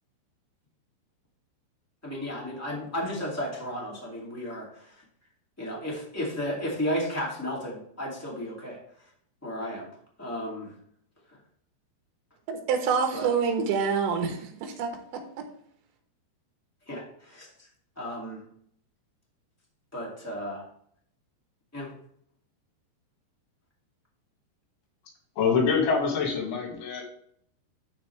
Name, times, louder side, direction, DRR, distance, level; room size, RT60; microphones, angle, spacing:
voice 1, 2.0-5.0 5.6-9.1 9.4-9.9 10.2-10.7 13.1-13.3 16.9-17.7 17.9-18.4 19.9-20.6 21.7-21.9, equal, 10° left, -4 dB, 1.0 m, -34 dB
voice 2, 12.5-14.9, right 6 dB, 85° right, 5 dB, 3.5 m, -26 dB
voice 3, 25.4-27.0, left 5 dB, 85° left, 0 dB, 4.4 m, -25 dB
13.0 x 4.5 x 3.3 m, 0.67 s
omnidirectional pair, 5.0 m